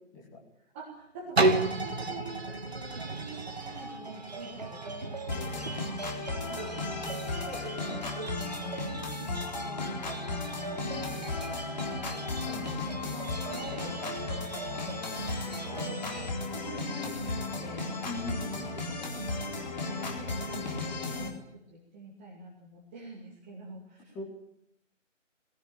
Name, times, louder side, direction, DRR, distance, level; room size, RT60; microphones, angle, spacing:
voice 1, 0.6-6.0 6.3-8.8 9.2-10.2 10.5-16.0 16.3-18.1 18.4-19.8 20.6-24.2, right 2 dB, 10° right, -4 dB, 1.8 m, -48 dB
sound 1, 1.4-7.1 7.7-7.8, right 2 dB, 55° right, 2.6 m, -32 dB
sound 2, 2.9-16.3, right 3 dB, 35° right, 0.8 m, -41 dB
sound 3, 5.3-21.3, left 3 dB, 35° left, 3.9 m, -35 dB
voice 2, 18.0-19.0 24.1-24.2, left 2 dB, 10° left, -3 dB, 2.7 m, -41 dB
20.5 x 17.5 x 8.9 m, 0.73 s
figure-of-eight pair, 155°, 38 cm